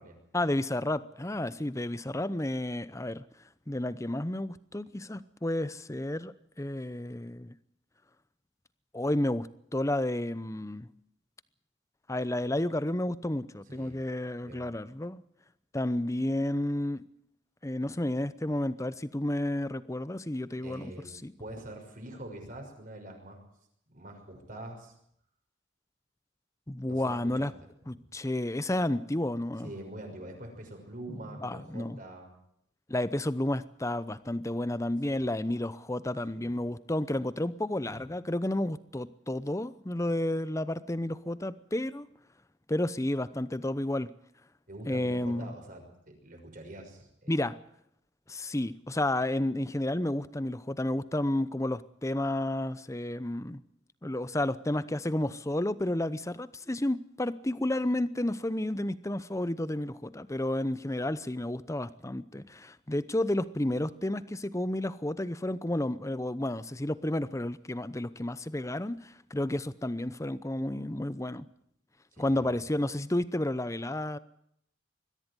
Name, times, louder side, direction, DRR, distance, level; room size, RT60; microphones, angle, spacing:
voice 1, 0.3-3.2 3.7-7.5 8.9-9.5 9.7-10.9 12.1-15.2 15.7-17.0 17.6-20.9 21.2-21.3 26.7-27.5 27.9-29.7 31.1-32.0 32.9-42.1 42.7-44.1 44.9-45.5 47.3-47.6 48.3-53.6 54.0-71.5 72.2-74.2, left 1 dB, 15° left, 16 dB, 0.8 m, -31 dB
voice 2, 13.7-14.0 14.4-14.6 20.6-21.1 21.4-23.4 23.9-24.9 26.9-27.5 27.9-28.1 29.6-32.3 35.1-35.3 36.3-36.7 37.8-38.0 44.7-47.3 72.1-72.6, right 1 dB, 45° right, 3 dB, 5.9 m, -45 dB
22.0 x 14.5 x 9.9 m, 0.73 s
head